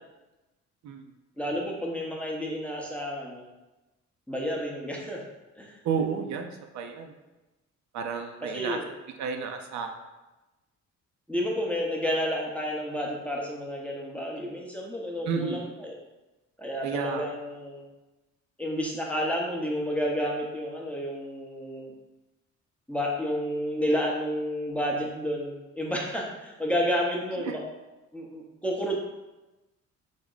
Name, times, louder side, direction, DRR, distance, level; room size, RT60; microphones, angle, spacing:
voice 1, 1.4-3.5 4.3-5.2 5.5-5.8 8.5-8.9 11.3-15.9 16.6-17.8 18.6-21.9 22.9-27.6 28.1-29.0, equal, 5° left, -2 dB, 0.6 m, -30 dB
voice 2, 5.8-7.1 7.9-8.8 9.2-10.0 15.3-15.7 16.8-17.3, right 6 dB, 70° right, 4 dB, 0.4 m, -31 dB
3.4 x 2.0 x 3.8 m, 1.1 s
cardioid pair, 90°, 30 cm